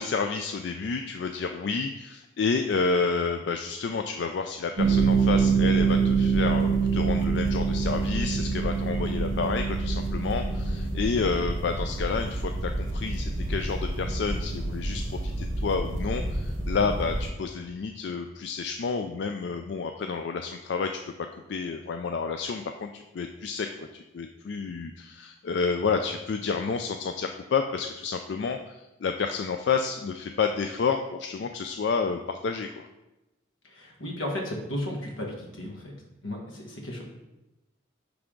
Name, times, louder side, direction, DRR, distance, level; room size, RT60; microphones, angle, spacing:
voice 1, 0.0-20.9 21.5-22.9 23.1-23.9 24.1-32.8, left 5 dB, 60° left, 5 dB, 0.3 m, -30 dB
sound 1, 4.8-17.3, right 4 dB, 75° right, 1.0 m, -26 dB
voice 2, 33.7-35.9 36.2-37.0, left 1 dB, 80° left, 0 dB, 1.4 m, -34 dB
9.6 x 3.5 x 3.7 m, 1.0 s
head